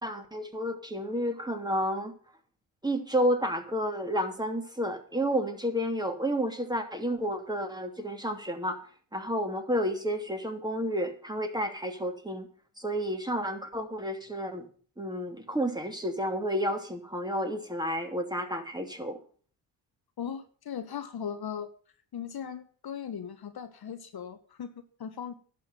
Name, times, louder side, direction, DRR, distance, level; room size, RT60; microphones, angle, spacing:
voice 1, 0.0-2.1 2.8-8.8 9.1-12.5 12.8-14.7 15.0-19.2, equal, 10° right, 5 dB, 2.8 m, -31 dB
voice 2, 20.2-21.7 22.1-25.3, left 8 dB, 50° left, 9 dB, 1.3 m, -38 dB
11.0 x 6.4 x 9.2 m, 0.43 s
supercardioid pair, 55°, 49 cm